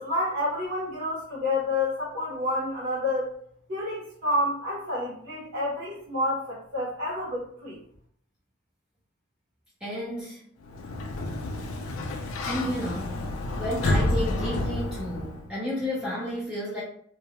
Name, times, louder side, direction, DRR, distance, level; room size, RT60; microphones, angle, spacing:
voice 1, 0.0-3.3 3.7-7.8, left 1 dB, 65° right, -8 dB, 0.8 m, -29 dB
voice 2, 9.8-10.4 12.4-13.2 13.6-16.8, left 1 dB, 5° right, -8 dB, 0.4 m, -32 dB
Sliding door, 10.6-15.5, left 1 dB, 85° left, 0.4 m, -29 dB
2.3 x 2.1 x 2.9 m, 0.64 s
head